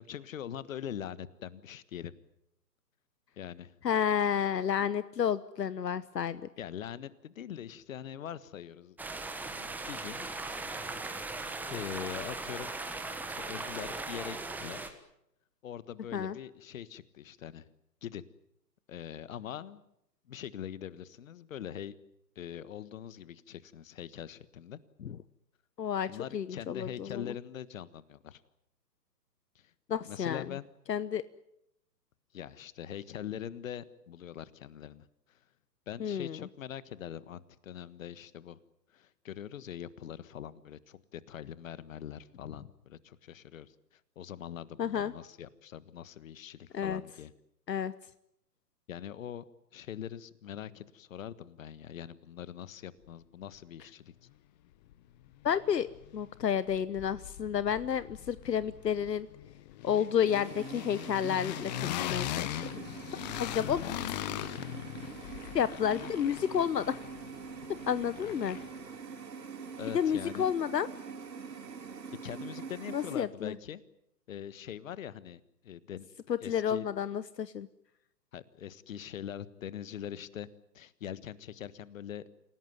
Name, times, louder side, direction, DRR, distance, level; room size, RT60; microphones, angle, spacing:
voice 1, 0.0-2.1 3.4-3.7 6.6-9.0 9.6-10.3 11.7-12.7 13.4-15.0 15.6-17.6 18.0-18.2 18.9-19.8 20.3-21.9 22.3-24.8 26.1-28.4 29.5-29.7 30.0-30.7 32.3-35.4 35.9-38.6 38.9-47.3 48.9-49.4 49.7-54.1 69.8-70.5 72.2-73.8 74.3-76.1 76.4-76.9 78.3-80.5 80.7-82.2, left 10 dB, 50° left, 16 dB, 1.5 m, -43 dB
voice 2, 3.8-6.4 16.1-16.3 25.0-25.2 25.8-27.2 29.9-30.4 30.9-31.2 36.0-36.5 44.8-45.1 46.7-47.0 47.7-47.9 55.4-55.9 56.1-59.3 59.8-62.9 63.3-63.8 65.5-67.0 67.9-68.6 69.9-70.9 72.9-73.5 76.3-77.7, left 8 dB, 75° left, 16 dB, 1.1 m, -31 dB
sound 1, 9.0-14.9, right 3 dB, 5° right, 1.4 m, -38 dB
sound 2, 54.9-55.0 55.3-56.4 56.7-68.9, left 14 dB, 25° left, 1.0 m, -40 dB
sound 3, 60.3-73.2, right 5 dB, 75° right, 3.4 m, -45 dB
28.0 x 17.5 x 9.3 m, 0.79 s
hypercardioid pair, 135°, 50 cm